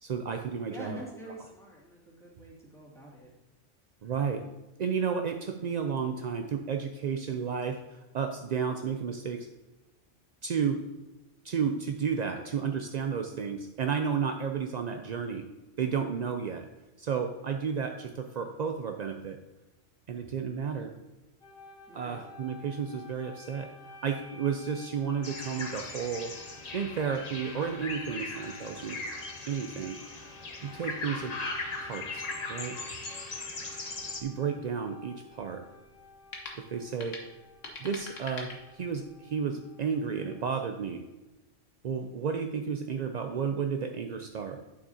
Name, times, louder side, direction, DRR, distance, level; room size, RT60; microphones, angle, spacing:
voice 1, 0.0-1.0 4.0-4.4 4.8-9.5 10.4-10.8 11.4-15.4 15.8-16.7 17.0-19.4 20.1-20.9 21.9-23.7 24.0-26.3 26.7-29.0 29.5-30.0 30.6-31.3 31.8-32.8 34.2-35.6 36.6-37.2 37.8-41.0 41.8-44.8, right 6 dB, 65° right, 5 dB, 0.4 m, -32 dB
voice 2, 0.6-3.3 12.3-12.7 21.9-22.2, equal, ahead, -6 dB, 2.1 m, -46 dB
sound 1, 21.4-41.0, left 2 dB, 50° left, 1.2 m, -52 dB
sound 2, 25.2-34.2, left 3 dB, 35° left, 0.9 m, -39 dB
sound 3, 33.9-39.2, left 3 dB, 80° left, 1.5 m, -46 dB
8.9 x 6.9 x 2.7 m, 1.1 s
omnidirectional pair, 1.3 m